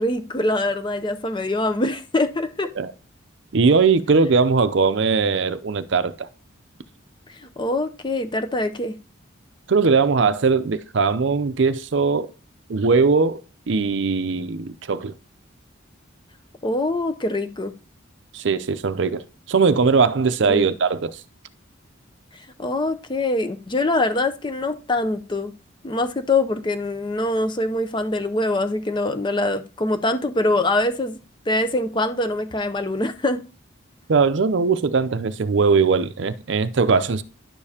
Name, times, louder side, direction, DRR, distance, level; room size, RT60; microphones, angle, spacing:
voice 1, 0.0-2.7 7.4-8.9 16.6-17.7 20.5-20.7 22.6-25.5 25.8-31.2 31.5-33.4, left 2 dB, 20° left, 0.5 m, -24 dB
voice 2, 3.5-6.3 9.7-12.3 12.7-13.4 13.7-15.1 18.3-21.2 34.1-37.2, right 4 dB, 60° right, 0.5 m, -20 dB
10.5 x 6.8 x 2.8 m
head